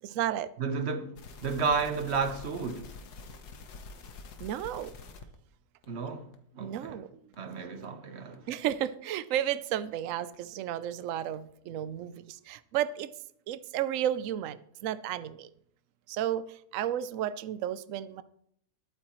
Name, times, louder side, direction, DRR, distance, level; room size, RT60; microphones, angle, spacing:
voice 1, 0.0-0.5 4.4-4.9 6.5-7.3 8.5-13.1 13.5-15.5 16.1-18.2, right 11 dB, 65° right, 0.9 m, -33 dB
voice 2, 0.6-2.9 5.9-6.3 6.6-7.0 7.4-8.5, right 5 dB, 45° right, 1.2 m, -32 dB
sound 1, 1.1-5.3 5.8-5.9 6.3-6.4 6.8-6.9 7.3-7.4 7.8-7.9 8.3-8.4 8.8-8.9 9.3-9.4 9.8-9.9 10.3-10.4 10.8-10.9 11.3-11.4, left 4 dB, 70° left, 1.6 m, -47 dB
20.5 x 8.8 x 3.1 m
omnidirectional pair, 1.8 m